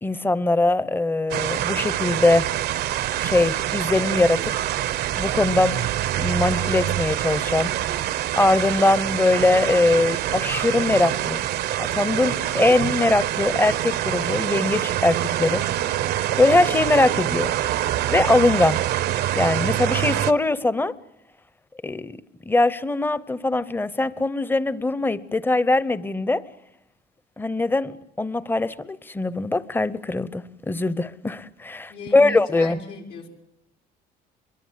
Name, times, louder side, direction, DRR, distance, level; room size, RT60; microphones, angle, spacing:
voice 1, 0.0-2.5 3.2-4.5 5.2-5.8 6.2-7.7 8.4-11.4 11.8-15.6 16.4-17.5 18.1-18.8 19.3-21.0 21.8-22.2 22.5-26.4 27.4-32.8, left 2 dB, 10° left, 0.8 m, -21 dB
sound 1, 1.3-20.3, right 12 dB, 75° right, 0.9 m, -25 dB
voice 2, 31.9-33.3, left 1 dB, 85° left, 5.0 m, -37 dB
23.5 x 22.5 x 7.5 m
cardioid pair, 110°, 17 cm